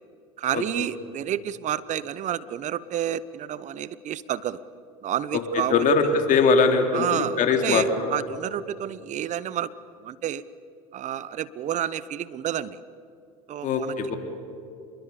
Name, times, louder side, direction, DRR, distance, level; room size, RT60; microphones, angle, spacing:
voice 1, 0.4-4.6 5.0-6.1 6.9-9.7 10.0-10.4 10.9-12.8 13.5-13.9, right 11 dB, 45° right, 18 dB, 0.8 m, -30 dB
voice 2, 5.7-8.1 13.6-14.2, left 4 dB, 50° left, 5 dB, 3.2 m, -21 dB
27.0 x 22.0 x 7.0 m, 2.6 s
hypercardioid pair, 80°, 17 cm